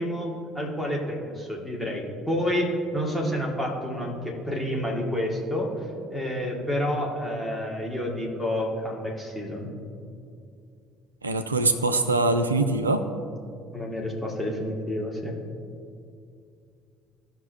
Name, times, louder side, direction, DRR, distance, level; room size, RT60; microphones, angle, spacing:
voice 1, 0.0-5.7 6.1-9.7 12.9-13.0 13.7-15.3, equal, ahead, -3 dB, 1.9 m, -29 dB
voice 2, 11.2-13.0, right 2 dB, 85° right, 8 dB, 0.4 m, -23 dB
15.0 x 5.9 x 2.7 m, 2.4 s
figure-of-eight pair, 55°, 0 cm